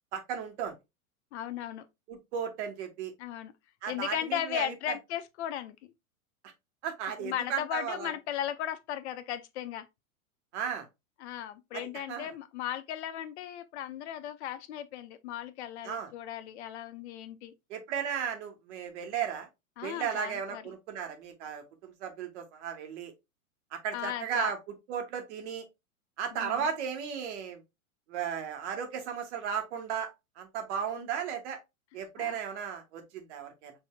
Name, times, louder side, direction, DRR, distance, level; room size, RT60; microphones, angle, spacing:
voice 1, 0.1-0.7 2.1-3.1 3.8-4.9 6.8-8.1 10.5-10.9 11.7-11.8 12.1-12.3 15.8-16.1 17.7-19.5 19.8-23.1 23.7-24.6 24.9-25.6 26.2-27.6 28.1-30.1 30.4-31.6 31.9-33.7, right 7 dB, 55° right, 1.2 m, -35 dB
voice 2, 1.3-1.9 3.2-3.5 3.9-5.9 7.2-9.9 11.2-17.5 19.8-20.8 23.9-24.5 26.3-26.7 32.2-32.4, left 11 dB, 55° left, 0.5 m, -36 dB
5.5 x 2.6 x 2.2 m
hypercardioid pair, 105°, 42 cm